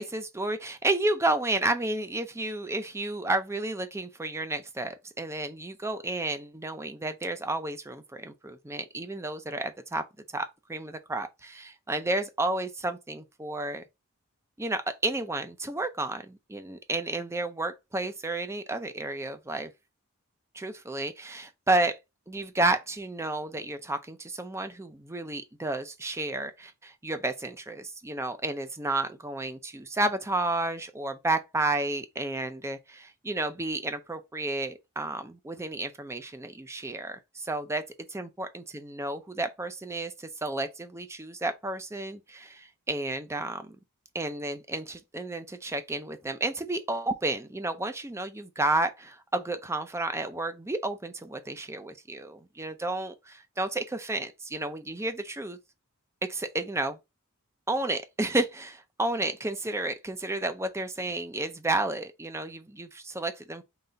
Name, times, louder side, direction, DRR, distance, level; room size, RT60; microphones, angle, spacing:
voice 1, 0.0-10.0 10.3-13.8 14.6-19.7 20.5-21.9 22.3-37.8 38.1-43.8 44.1-55.6 56.3-57.0 57.7-63.6, right 2 dB, 10° right, 0.5 m, -31 dB
3.9 x 3.3 x 3.9 m
head